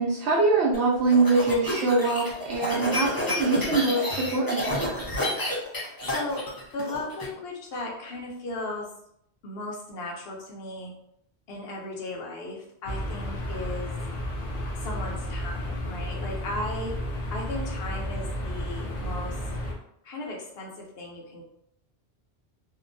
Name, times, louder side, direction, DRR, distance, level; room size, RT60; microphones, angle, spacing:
voice 1, 0.0-4.9, right 3 dB, 80° right, -4 dB, 0.9 m, -23 dB
sound 1, 0.7-7.3, left 1 dB, 25° left, 0.7 m, -30 dB
voice 2, 6.1-6.4 6.7-8.9 9.4-10.9 11.5-13.9 14.8-16.9 17.3-19.4 20.0-21.4, left 2 dB, 70° left, -1 dB, 0.9 m, -36 dB
sound 2, 12.9-19.7, left 1 dB, 55° left, 0.5 m, -32 dB
2.8 x 2.1 x 2.5 m, 0.74 s
omnidirectional pair, 1.1 m